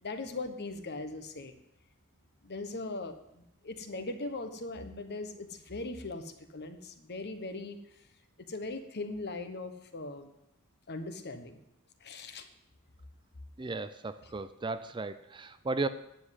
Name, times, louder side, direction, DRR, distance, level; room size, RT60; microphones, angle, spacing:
voice 1, 0.0-1.5 2.4-8.1 8.5-10.3 10.9-11.6 12.0-12.5, left 2 dB, 50° left, 8 dB, 1.2 m, -40 dB
voice 2, 13.6-15.9, right 3 dB, 20° right, 12 dB, 0.4 m, -35 dB
9.9 x 7.7 x 8.2 m, 0.82 s
head